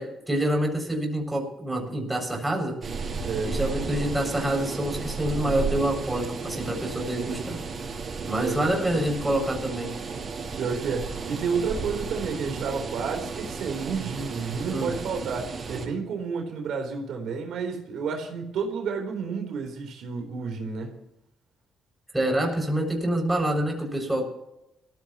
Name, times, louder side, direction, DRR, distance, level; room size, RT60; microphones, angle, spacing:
voice 1, 0.0-2.9 3.4-7.6 7.9-9.9 14.7-14.9 22.1-24.3, right 1 dB, 10° right, 1 dB, 6.6 m, -27 dB
sound 1, 2.8-15.9, right 4 dB, 45° right, 6.4 m, -34 dB
voice 2, 3.2-3.5 8.4-8.7 10.6-20.9, right 5 dB, 75° right, 2 dB, 3.9 m, -30 dB
22.0 x 15.5 x 3.1 m, 0.86 s
cardioid pair, 90°, 0 cm